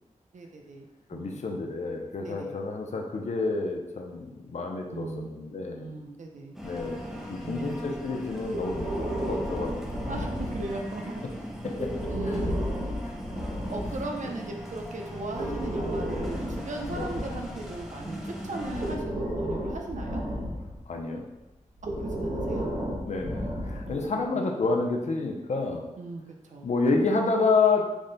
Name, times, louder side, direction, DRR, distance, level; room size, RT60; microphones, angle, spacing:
voice 1, 0.3-0.9 1.1-1.4 2.2-2.5 4.9-6.6 7.4-8.0 10.1-11.2 12.1-13.0 13.7-20.2 21.8-22.7 23.8-24.4 26.0-26.7, right 2 dB, 70° right, 2 dB, 0.5 m, -38 dB
voice 2, 1.1-5.9 6.6-10.3 11.6-11.9 12.3-12.4 13.0-13.2 16.9-17.1 20.9-21.2 23.1-25.8 26.6-27.9, left 3 dB, 60° left, 1 dB, 0.5 m, -29 dB
sound 1, 6.5-19.0, equal, 5° right, 0.5 m, -39 dB
Breathing, 8.5-10.9 11.7-14.1 15.2-18.0 18.6-20.8 21.8-24.1, equal, 85° right, 1.3 m, -33 dB
3.5 x 2.1 x 3.8 m, 1.0 s
wide cardioid pair, 120°, 13 cm